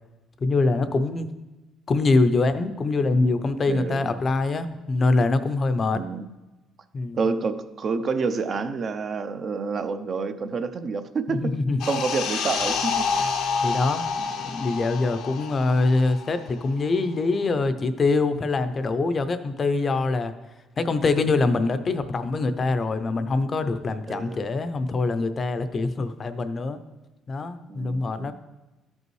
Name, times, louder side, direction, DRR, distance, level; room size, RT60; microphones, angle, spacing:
voice 1, 0.4-1.3 1.9-6.0 6.9-7.2 11.3-11.8 13.6-14.0 14.4-20.3 20.8-26.8 27.3-28.3, left 3 dB, 35° left, 11 dB, 0.5 m, -24 dB
voice 2, 3.7-4.1 5.9-6.3 7.1-11.5 11.9-13.1 14.2-14.3 24.1-24.5 27.7-28.3, right 4 dB, 45° right, 9 dB, 0.5 m, -28 dB
sound 1, 11.8-16.9 17.1-17.3, left 5 dB, 75° left, 0.7 m, -28 dB
13.0 x 5.4 x 3.1 m, 1.1 s
cardioid pair, 100°, 0 cm